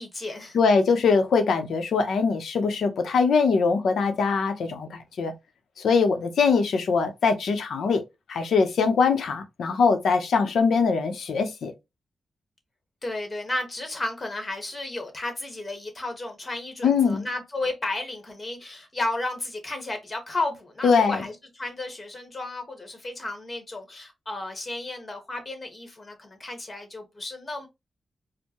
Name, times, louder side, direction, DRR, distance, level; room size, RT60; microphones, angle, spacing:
voice 1, 0.0-0.6 13.0-27.7, left 2 dB, 25° left, 1.3 m, -33 dB
voice 2, 0.5-5.3 5.8-8.0 8.3-11.7 16.8-17.2 20.8-21.2, left 5 dB, 85° left, 0.7 m, -22 dB
4.5 x 2.2 x 2.9 m
wide cardioid pair, 130°, 0 cm